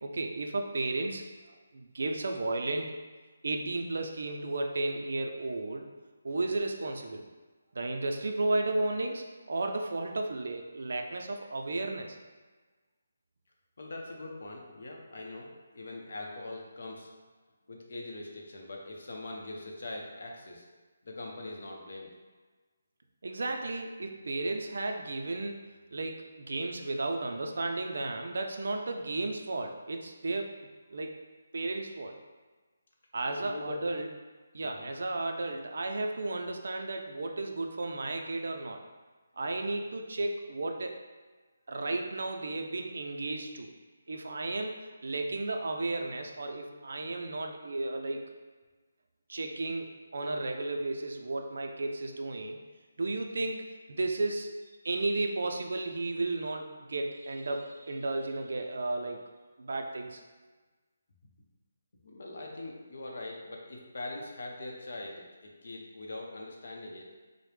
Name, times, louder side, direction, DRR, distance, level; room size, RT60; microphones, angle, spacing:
voice 1, 0.0-1.3 1.7-2.9 3.4-5.9 6.2-7.3 7.8-12.2 23.2-25.6 25.9-30.5 30.9-31.1 31.5-32.2 33.1-34.1 34.5-38.8 39.4-41.0 41.7-43.7 44.1-44.7 45.0-48.3 49.3-52.6 53.0-54.5 54.8-59.2 59.6-60.2, right 2 dB, 55° right, 3 dB, 0.4 m, -33 dB
voice 2, 13.8-17.1 17.7-20.6 21.0-22.1 33.3-33.8 34.6-34.9 62.0-67.1, left 2 dB, 50° left, 0 dB, 0.6 m, -42 dB
4.7 x 2.0 x 3.2 m, 1.3 s
hypercardioid pair, 180°, 0 cm